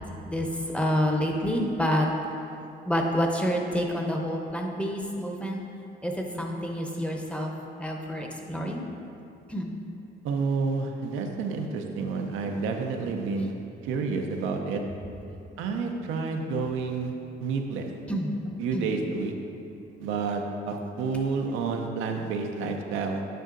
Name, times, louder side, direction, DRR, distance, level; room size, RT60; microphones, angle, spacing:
voice 1, 0.2-2.1 2.9-5.6 6.0-7.5 7.8-8.8 9.5-9.7 18.1-18.3 18.7-18.9, equal, 5° left, 1 dB, 0.8 m, -28 dB
voice 2, 10.2-13.5 13.8-14.8 15.6-17.1 17.4-17.9 18.6-19.3 20.0-23.2, right 4 dB, 90° right, 3 dB, 0.6 m, -29 dB
9.0 x 5.4 x 2.6 m, 2.6 s
cardioid pair, 90°, 20 cm